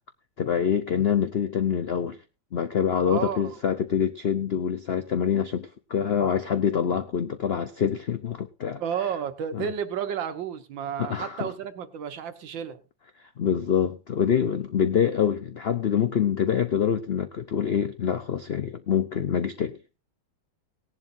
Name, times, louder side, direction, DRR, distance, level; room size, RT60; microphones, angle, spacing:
voice 1, 0.4-2.2 2.5-8.8 9.5-9.7 11.0-11.5 13.4-19.8, left 8 dB, 85° left, 0.5 m, -25 dB
voice 2, 3.0-3.6 8.8-12.8, right 8 dB, 80° right, 1.8 m, -32 dB
18.0 x 11.0 x 2.6 m
omnidirectional pair, 2.0 m